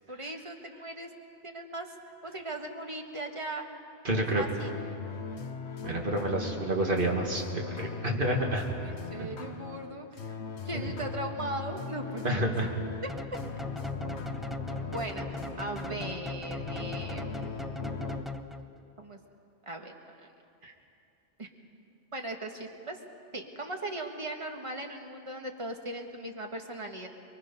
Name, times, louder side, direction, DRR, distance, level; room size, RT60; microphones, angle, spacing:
voice 1, 0.1-1.1 1.4-1.9 2.2-3.6 4.1-4.7 8.7-10.4 10.6-12.5 13.0-13.4 14.9-15.3 15.6-17.9 19.0-19.2 19.6-20.3 21.4-21.5 22.1-23.0 23.3-27.1, right 1 dB, 25° right, 3 dB, 1.5 m, -39 dB
voice 2, 4.0-4.4 5.8-8.6 9.2-9.4 10.7-10.8 12.2-12.7 20.6-20.7, right 1 dB, 45° right, 0 dB, 2.2 m, -29 dB
sound 1, 4.6-18.2, left 5 dB, 65° left, 1.2 m, -40 dB
sound 2, 13.1-18.8, left 1 dB, ahead, 0.3 m, -38 dB
24.0 x 22.5 x 5.5 m, 2.6 s
omnidirectional pair, 1.3 m